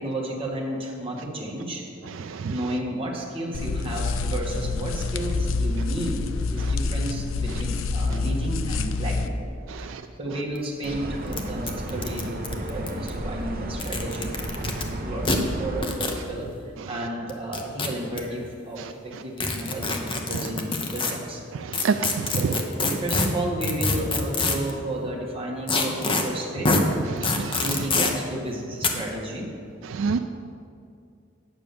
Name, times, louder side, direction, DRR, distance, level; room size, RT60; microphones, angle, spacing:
voice 1, 0.0-1.8 2.5-9.4 9.8-21.4 22.3-26.7 27.6-29.5, right 1 dB, 30° right, -2 dB, 1.7 m, -32 dB
voice 2, 2.2-2.5 6.6-6.7 9.7-10.0 21.6-22.4 27.1-27.6 29.9-30.2, right 5 dB, 75° right, 8 dB, 0.4 m, -28 dB
sound 1, 3.5-9.3, left 3 dB, 80° left, 0.5 m, -27 dB
sound 2, 10.6-10.7 10.8-10.9 11.3-11.4 11.7-13.1 13.7-14.8 15.2-15.4 15.8-16.2 17.3-18.2 19.4-21.1 21.7-24.7 25.7-26.2 26.6-26.8 27.2-28.1 28.8-28.9, left 3 dB, 25° left, 0.9 m, -25 dB
sound 3, 10.8-15.8, right 1 dB, 50° right, 1.0 m, -33 dB
9.2 x 6.3 x 6.9 m, 2.4 s
head